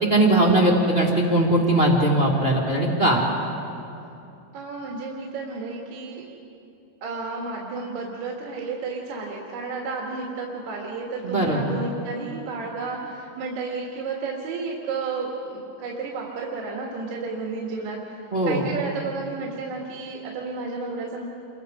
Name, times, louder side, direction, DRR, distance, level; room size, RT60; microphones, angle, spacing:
voice 1, 0.0-3.2 11.2-11.7 18.3-18.7, right 1 dB, 25° right, -2 dB, 1.5 m, -20 dB
voice 2, 4.5-6.2 7.0-21.2, right 4 dB, 80° right, -2 dB, 4.0 m, -32 dB
29.0 x 25.0 x 5.1 m, 2.9 s
omnidirectional pair, 4.7 m